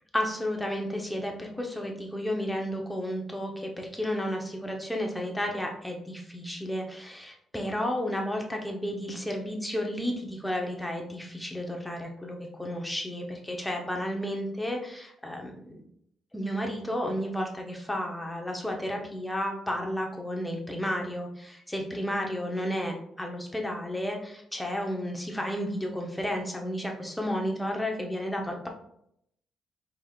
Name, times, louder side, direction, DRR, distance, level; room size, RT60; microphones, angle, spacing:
voice 1, 0.1-15.8 16.3-28.7, equal, 5° left, 1 dB, 0.9 m, -32 dB
4.7 x 3.6 x 2.4 m, 0.72 s
cardioid pair, 90°, 0 cm